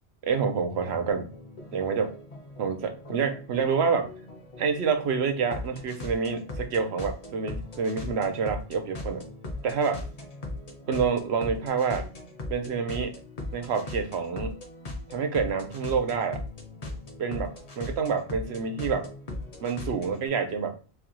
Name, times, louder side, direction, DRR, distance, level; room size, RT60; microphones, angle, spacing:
voice 1, 0.2-1.3 1.7-2.1 2.6-4.1 4.6-9.3 9.6-10.0 10.9-12.1 12.5-13.1 13.5-14.6 15.1-16.4 17.2-19.1 19.6-20.8, right 5 dB, 75° right, 7 dB, 1.0 m, -27 dB
sound 1, 0.7-20.3, left 2 dB, 40° left, 0.8 m, -39 dB
4.6 x 2.3 x 2.9 m, 0.36 s
omnidirectional pair, 1.1 m